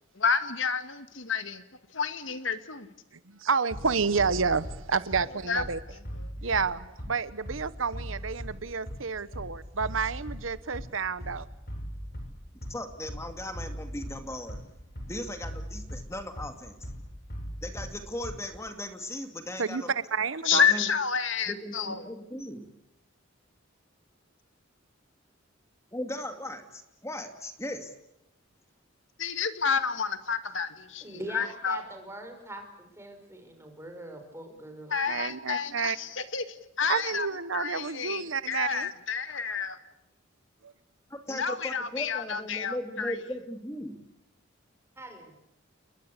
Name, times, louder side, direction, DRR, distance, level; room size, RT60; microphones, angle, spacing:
voice 1, 0.2-1.6 1.9-2.9 5.5-5.6 6.2-6.3 20.5-22.0 29.2-31.0 31.3-31.8 34.9-37.3 37.5-39.8 41.3-43.1, left 6 dB, 70° left, 10 dB, 1.9 m, -29 dB
voice 2, 3.4-5.8 6.4-11.5 19.6-19.8 20.1-20.7 35.1-36.0 36.9-38.9 40.6-40.7, right 5 dB, 80° right, 15 dB, 1.0 m, -30 dB
Bass drum, 3.7-18.7, equal, 45° left, 7.4 m, -40 dB
voice 3, 12.7-14.6 15.1-16.9 17.6-19.9 20.5-20.9 21.5-22.7 25.9-27.9 41.1-44.0, left 1 dB, 15° left, 7 dB, 2.3 m, -38 dB
voice 4, 31.0-34.9 45.0-45.4, right 1 dB, 15° right, 5 dB, 5.7 m, -42 dB
30.0 x 21.5 x 8.3 m, 0.84 s
head